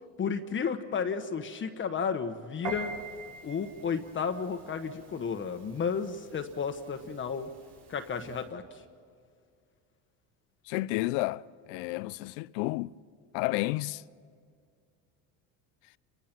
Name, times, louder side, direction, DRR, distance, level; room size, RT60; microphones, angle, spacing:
voice 1, 0.2-2.9 3.4-7.5 7.9-8.6, left 6 dB, 30° left, 1.2 m, -32 dB
Piano, 2.6-8.5, right 4 dB, 75° right, 5.3 m, -45 dB
voice 2, 10.7-11.4 11.7-12.9 13.3-14.0, left 19 dB, 80° left, 0.6 m, -31 dB
29.0 x 22.5 x 6.0 m
supercardioid pair, 110°, 37 cm